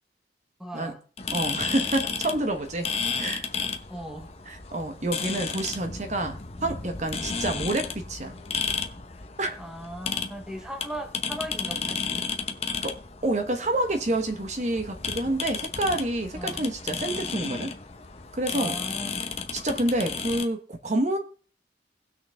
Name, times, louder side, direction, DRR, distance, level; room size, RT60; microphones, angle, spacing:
voice 1, 0.6-1.0 3.9-4.3 9.6-12.3 16.3-16.6 18.5-19.2, equal, 5° right, 4 dB, 1.0 m, -38 dB
sound 1, 1.2-20.5, left 5 dB, 35° left, 0.8 m, -33 dB
voice 2, 1.3-3.4 4.5-8.4 9.4-9.6 12.8-17.7 18.3-18.8 19.5-21.2, right 1 dB, 40° right, 6 dB, 1.1 m, -28 dB
18.0 x 6.3 x 3.4 m, 0.40 s
head